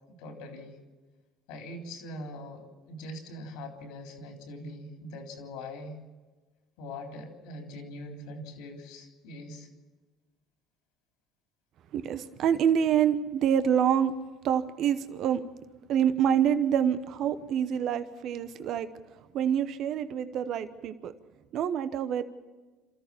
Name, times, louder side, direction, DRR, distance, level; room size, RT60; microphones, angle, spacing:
voice 1, 0.1-0.8 1.5-6.0 6.8-9.7, left 1 dB, 80° left, 3.6 m, -42 dB
voice 2, 11.9-14.1 14.4-15.4 15.9-18.9 19.3-21.1 21.5-22.2, right 9 dB, 60° right, 0.9 m, -26 dB
27.0 x 14.0 x 7.1 m
hypercardioid pair, 75°, 0 cm